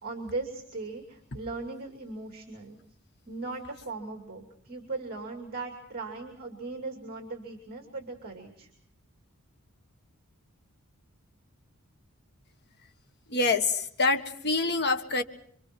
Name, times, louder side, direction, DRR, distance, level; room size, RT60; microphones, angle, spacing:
voice 1, 0.0-2.8 3.3-8.7, right 3 dB, 45° right, 3 dB, 2.7 m, -38 dB
voice 2, 13.3-15.2, left 3 dB, 50° left, 6 dB, 1.6 m, -26 dB
27.0 x 25.0 x 4.6 m, 0.62 s
head